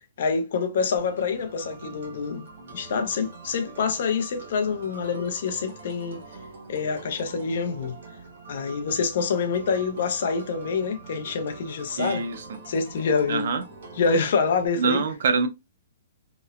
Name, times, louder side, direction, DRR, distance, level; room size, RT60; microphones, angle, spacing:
voice 1, 0.2-2.4 2.7-6.2 6.7-8.0 8.5-12.2 12.7-13.5 14.0-15.0, left 5 dB, 55° left, 0.5 m, -26 dB
sound 1, 1.0-14.7, right 3 dB, 75° right, 1.0 m, -44 dB
voice 2, 12.0-12.4 13.3-13.6 14.8-15.5, right 5 dB, 55° right, 0.5 m, -24 dB
2.9 x 2.0 x 2.3 m
hypercardioid pair, 170°, 0 cm